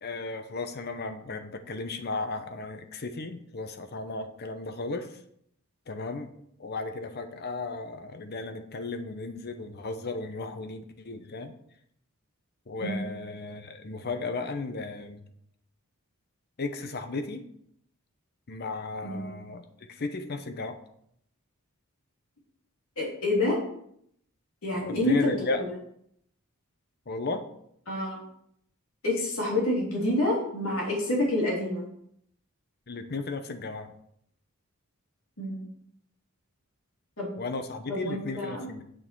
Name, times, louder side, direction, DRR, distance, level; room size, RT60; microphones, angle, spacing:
voice 1, 0.0-5.2 5.9-6.3 6.6-11.5 12.7-15.2 16.6-17.4 18.5-20.8 24.7-25.6 27.1-27.4 32.9-33.9 37.4-38.8, left 3 dB, 50° left, 8 dB, 0.8 m, -35 dB
voice 2, 23.0-23.6 24.6-25.6 27.9-28.2 29.0-31.8 35.4-35.6 37.2-37.3 37.9-38.7, left 1 dB, 70° left, -4 dB, 3.2 m, -28 dB
9.0 x 6.3 x 4.6 m, 0.71 s
head